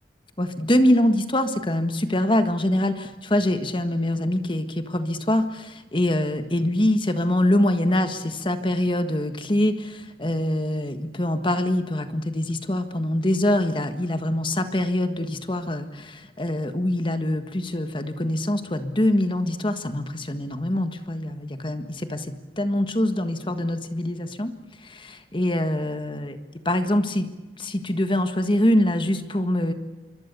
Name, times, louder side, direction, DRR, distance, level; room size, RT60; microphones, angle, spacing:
voice 1, 0.4-24.5 24.8-26.4 26.6-27.3 27.6-29.7, left 1 dB, 30° left, 8 dB, 1.5 m, -24 dB
26.0 x 24.0 x 6.9 m, 1.2 s
head